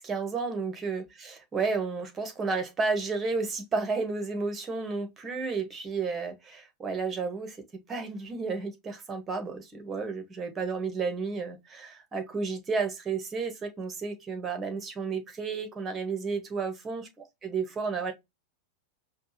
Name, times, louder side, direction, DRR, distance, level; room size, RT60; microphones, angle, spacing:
voice 1, 0.0-7.6 7.9-17.1 17.4-18.1, right 4 dB, 20° right, 1.4 m, -32 dB
5.1 x 2.4 x 3.2 m
figure-of-eight pair, 90°, 0 cm